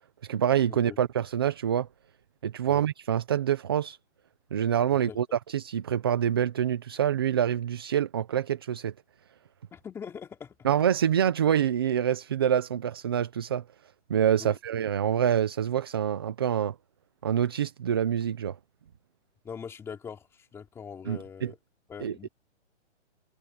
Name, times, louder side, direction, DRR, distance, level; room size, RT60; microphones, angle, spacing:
voice 1, 0.2-1.9 2.4-4.0 4.5-8.9 10.6-13.6 14.1-16.7 17.2-18.6 21.1-21.5 22.0-22.3, right 9 dB, 20° right, 0.6 m, -26 dB
voice 2, 9.7-10.6 14.4-14.6 19.4-21.6 21.9-22.3, left 6 dB, 5° left, 3.2 m, -42 dB
hypercardioid pair, 170°, 35 cm